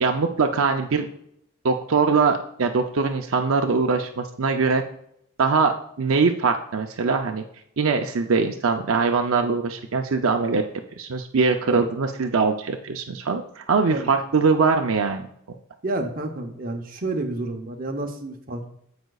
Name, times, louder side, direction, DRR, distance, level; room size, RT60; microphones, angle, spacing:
voice 1, 0.0-1.1 1.6-4.8 5.4-7.4 7.8-10.6 11.0-15.3, right 4 dB, 70° right, 4 dB, 0.5 m, -22 dB
voice 2, 15.8-18.7, right 2 dB, 40° right, 3 dB, 0.9 m, -30 dB
14.5 x 5.1 x 2.4 m, 0.73 s
head